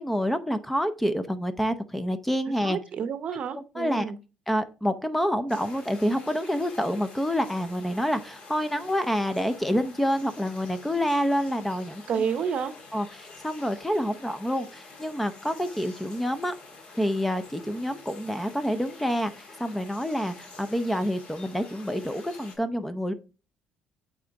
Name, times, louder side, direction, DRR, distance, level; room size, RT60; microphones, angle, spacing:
voice 1, 0.0-2.8 3.3-4.1 4.5-12.0 12.9-16.5 17.0-23.1, equal, 5° left, 11 dB, 0.6 m, -28 dB
voice 2, 2.6-4.2 12.1-12.7, right 7 dB, 50° right, 12 dB, 0.7 m, -29 dB
sound 1, 5.5-22.6, left 3 dB, 45° left, 2.0 m, -48 dB
8.5 x 3.8 x 3.5 m, 0.32 s
cardioid pair, 115°, 3 cm